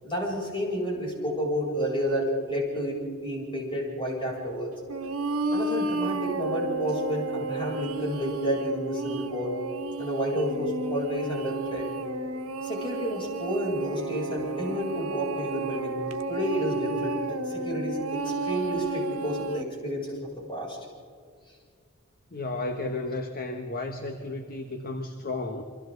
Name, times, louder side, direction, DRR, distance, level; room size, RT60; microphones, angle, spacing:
voice 1, 0.0-4.7 5.5-9.5 10.0-11.9 12.6-16.0 16.3-20.8, equal, 25° left, -3 dB, 7.9 m, -30 dB
sound 1, 4.9-19.6, right 2 dB, 85° right, 1.4 m, -32 dB
voice 2, 22.3-25.6, left 2 dB, 45° left, 5 dB, 1.4 m, -33 dB
29.5 x 24.5 x 4.0 m, 2.1 s
head